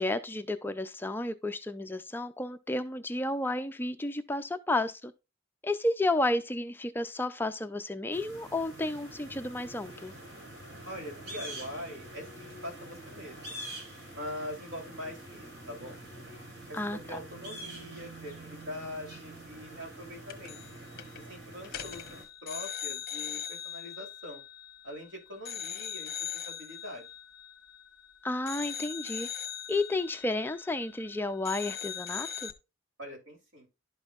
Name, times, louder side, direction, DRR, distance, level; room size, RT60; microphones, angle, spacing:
voice 1, 0.0-5.1 5.6-10.1 16.7-17.2 28.2-29.3 29.7-32.5, left 2 dB, 10° left, 0.4 m, -32 dB
sound 1, 8.1-22.2, right 1 dB, 55° right, 4.0 m, -46 dB
voice 2, 10.8-13.6 14.1-16.0 16.7-20.6 21.1-24.4 24.8-27.1 33.0-33.7, left 1 dB, 85° right, 3.4 m, -43 dB
sound 2, 20.3-20.7 21.0-21.2 21.6-25.0 25.5-28.1 28.5-31.1 31.4-32.5, left 9 dB, 45° left, 1.0 m, -40 dB
11.5 x 5.4 x 2.4 m
head